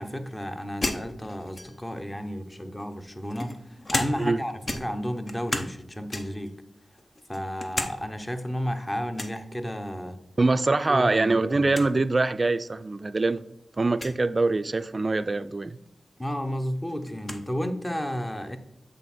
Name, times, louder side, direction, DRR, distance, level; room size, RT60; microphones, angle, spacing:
voice 1, 0.0-6.5 7.3-10.2 10.9-11.7 16.2-18.6, equal, 20° left, 0.9 m, -32 dB
sound 1, 0.8-2.0 2.8-4.4 4.6-5.8 6.1-6.5 7.0-8.0 8.3-8.4 9.1-9.4 10.8-11.2 11.5-11.6 11.7-11.9 12.7-12.8 13.9-14.2 15.9-16.0 16.3-17.4, left 2 dB, 50° left, 0.8 m, -33 dB
voice 2, 10.4-13.4 13.8-15.8, right 3 dB, 45° right, 0.4 m, -24 dB
7.9 x 3.6 x 4.2 m
cardioid pair, 40°, 0 cm